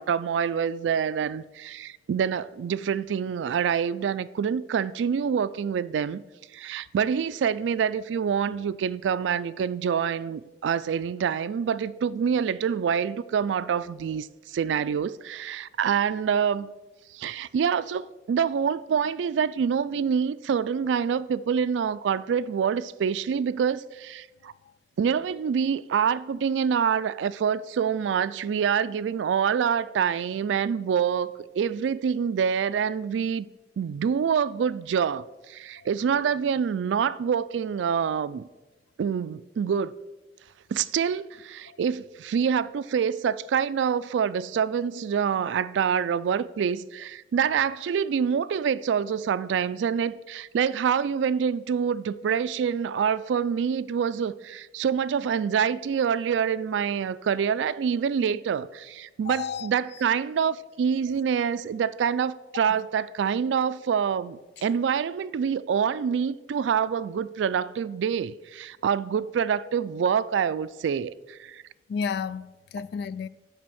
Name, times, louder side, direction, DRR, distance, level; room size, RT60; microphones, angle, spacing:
voice 1, 0.0-6.2 6.5-16.7 17.1-24.5 25.0-33.5 33.8-38.5 39.0-39.9 40.7-71.6, right 7 dB, 90° right, 0.3 m, -26 dB
voice 2, 59.2-59.7 71.9-73.3, left 6 dB, 65° left, 0.3 m, -32 dB
10.0 x 3.4 x 6.3 m
head